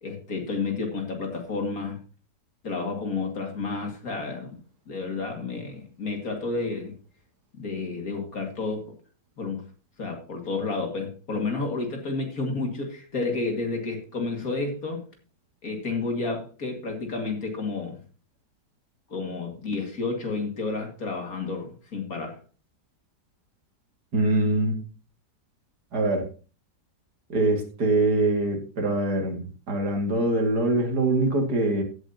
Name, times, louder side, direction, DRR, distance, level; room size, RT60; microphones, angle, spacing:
voice 1, 0.0-2.0 2.6-6.9 7.5-8.9 9.4-9.6 10.0-15.0 15.6-18.0 19.1-22.4, left 3 dB, 55° left, 2 dB, 2.7 m, -31 dB
voice 2, 24.1-24.8 25.9-26.3 27.3-31.8, right 2 dB, 65° right, 2 dB, 2.9 m, -24 dB
16.0 x 7.9 x 2.9 m, 0.35 s
omnidirectional pair, 1.9 m